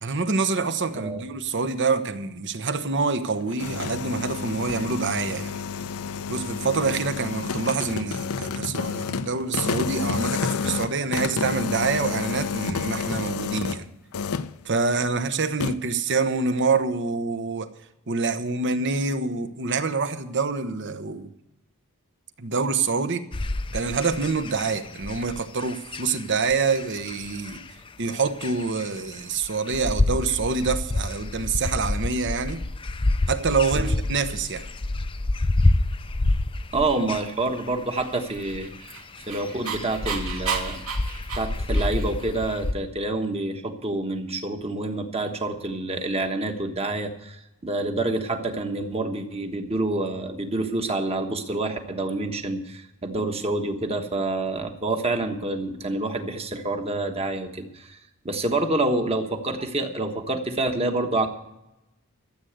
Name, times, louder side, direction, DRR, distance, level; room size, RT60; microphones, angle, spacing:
voice 1, 0.0-5.6 6.3-13.9 14.6-17.7 18.1-21.3 22.4-23.2 23.7-27.6 28.0-32.6 33.3-34.7, right 4 dB, 55° right, 10 dB, 1.0 m, -26 dB
sound 1, 3.3-13.8 14.1-14.6 15.6-15.7, left 5 dB, 85° left, 0.6 m, -30 dB
sound 2, 23.3-42.7, left 2 dB, 25° left, 0.5 m, -28 dB
voice 2, 36.7-38.7 39.3-40.8 41.3-58.0 58.2-61.3, right 2 dB, 25° right, 6 dB, 1.3 m, -27 dB
Dog, 38.4-42.3, right 6 dB, 85° right, 2.5 m, -32 dB
13.5 x 7.9 x 8.0 m, 0.90 s
head